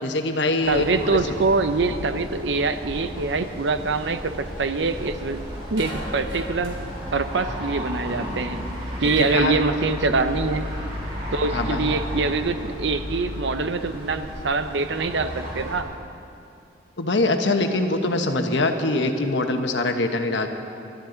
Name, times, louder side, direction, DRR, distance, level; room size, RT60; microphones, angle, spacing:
voice 1, 0.0-1.1 9.0-9.5 11.5-11.9 17.0-20.5, left 2 dB, 70° left, 5 dB, 1.2 m, -23 dB
sound 1, 0.6-15.8, equal, 30° right, 2.8 m, -33 dB
voice 2, 0.7-5.4 5.7-6.8 7.1-8.6 9.0-10.7 11.3-15.9, right 3 dB, 70° right, 10 dB, 0.7 m, -24 dB
sound 2, 4.6-5.2 5.6-9.3, right 2 dB, 90° right, 3.9 m, -36 dB
23.5 x 13.0 x 3.9 m, 2.6 s
head